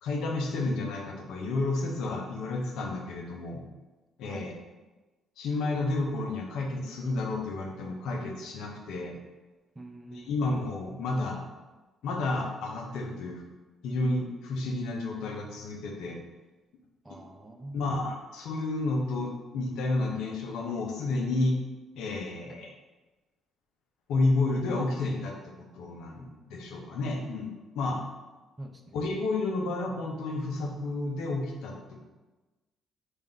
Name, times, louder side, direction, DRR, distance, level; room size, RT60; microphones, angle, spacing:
voice 1, 0.0-3.6 4.2-4.5 5.4-9.1 10.1-11.4 12.0-13.4 13.8-16.2 17.7-21.6 21.9-22.7 24.1-28.0 28.9-32.0, left 2 dB, 80° left, 2 dB, 0.6 m, -31 dB
voice 2, 4.2-4.5 9.8-10.3 17.0-17.8 28.6-29.0, right 2 dB, 15° right, 4 dB, 0.5 m, -45 dB
3.3 x 2.5 x 3.8 m, 1.2 s
cardioid pair, 85°, 0 cm